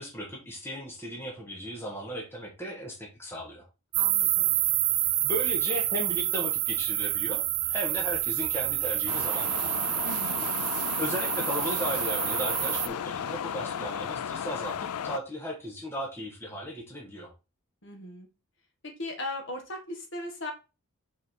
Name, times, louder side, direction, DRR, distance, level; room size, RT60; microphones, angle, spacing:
voice 1, 0.0-3.6 5.2-9.8 11.0-17.3, equal, 10° left, -1 dB, 1.6 m, -36 dB
voice 2, 3.9-4.5 10.0-10.5 17.8-18.3 18.8-20.5, left 1 dB, 55° left, 2 dB, 1.8 m, -38 dB
sound 1, 3.9-12.9, right 14 dB, 65° right, 0.6 m, -28 dB
sound 2, 9.1-15.2, left 8 dB, 85° left, 0.4 m, -34 dB
5.2 x 4.8 x 4.6 m, 0.30 s
head